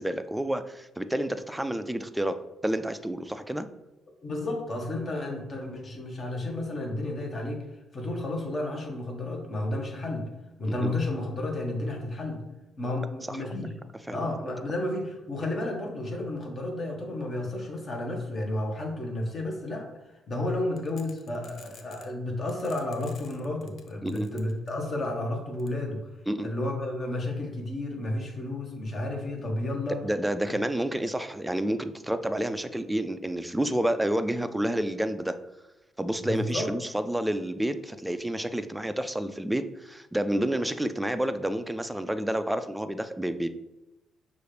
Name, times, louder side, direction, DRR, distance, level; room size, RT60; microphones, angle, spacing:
voice 1, 0.0-3.7 10.7-10.8 13.3-13.4 14.1-14.3 24.0-24.3 26.3-26.5 30.0-35.4 36.0-43.5, right 1 dB, 5° right, 9 dB, 0.3 m, -29 dB
voice 2, 4.2-7.6 7.9-10.3 10.6-12.4 12.8-13.7 14.1-26.0 26.4-30.0 30.4-30.5 36.2-36.7, left 1 dB, 40° left, 1 dB, 1.2 m, -32 dB
sound 1, 20.8-22.1 22.5-25.1 25.6-25.7, left 6 dB, 60° left, 0.5 m, -51 dB
6.2 x 2.5 x 3.3 m, 0.99 s
cardioid pair, 90°, 0 cm